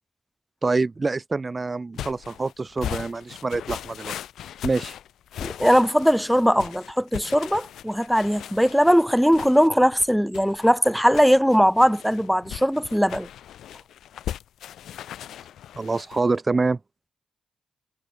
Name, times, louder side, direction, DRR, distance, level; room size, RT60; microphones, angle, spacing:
voice 1, 0.6-4.2 4.6-4.9 15.8-16.8, right 3 dB, 35° right, 0.9 m, -26 dB
sound 1, 2.0-16.3, left 11 dB, 80° left, 8.0 m, -38 dB
voice 2, 5.4-13.3, equal, ahead, 1.7 m, -20 dB
supercardioid pair, 60°, 0 cm